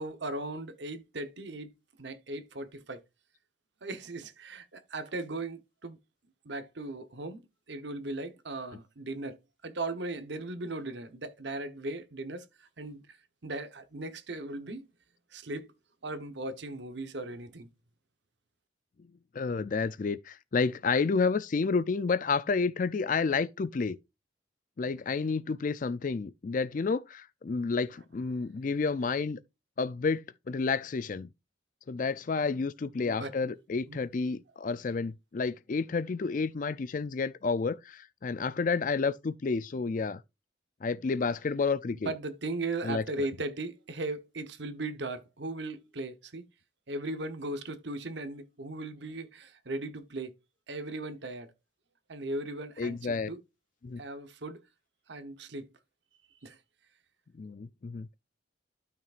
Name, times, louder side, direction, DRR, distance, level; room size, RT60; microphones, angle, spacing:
voice 1, 0.0-1.7 2.0-3.0 3.8-6.0 6.4-7.4 7.7-13.2 13.4-14.9 15.3-15.7 16.0-17.7 33.0-33.5 33.9-34.0 41.9-46.4 46.9-50.3 50.7-51.5 52.1-53.4 54.0-54.6 55.1-55.7 56.4-56.6, right 2 dB, 65° right, 1.0 m, -38 dB
voice 2, 19.3-24.0 24.8-29.4 29.8-31.3 31.9-40.2 40.8-42.1 42.8-43.0 52.8-53.3 53.8-54.0 57.3-58.1, left 4 dB, 40° left, 0.4 m, -30 dB
12.5 x 5.9 x 2.5 m
head